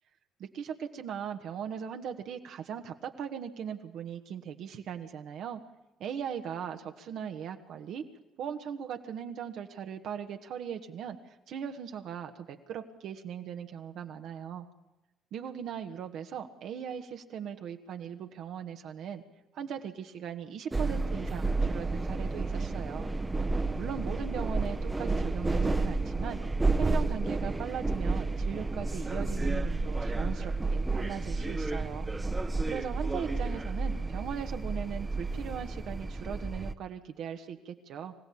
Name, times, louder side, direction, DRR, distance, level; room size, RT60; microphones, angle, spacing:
voice 1, 0.4-5.6 6.0-8.0 8.4-14.7 15.3-19.2 19.5-23.1 23.7-26.4 26.7-32.1 32.6-38.1, right 8 dB, 65° right, 5 dB, 1.6 m, -39 dB
sound 1, 20.7-36.7, right 3 dB, 20° right, 1.1 m, -31 dB
25.0 x 16.0 x 8.7 m, 0.98 s
hypercardioid pair, 65°, 0 cm